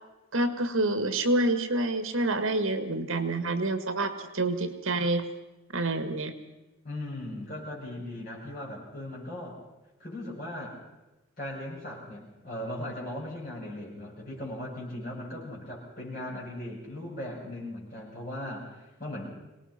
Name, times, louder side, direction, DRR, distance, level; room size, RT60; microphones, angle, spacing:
voice 1, 0.3-5.3 5.7-6.3, right 2 dB, 70° right, 9 dB, 1.7 m, -27 dB
voice 2, 6.8-9.6 10.0-10.8 11.4-19.3, left 1 dB, 40° left, -5 dB, 8.0 m, -38 dB
25.0 x 19.0 x 5.8 m, 1.0 s
head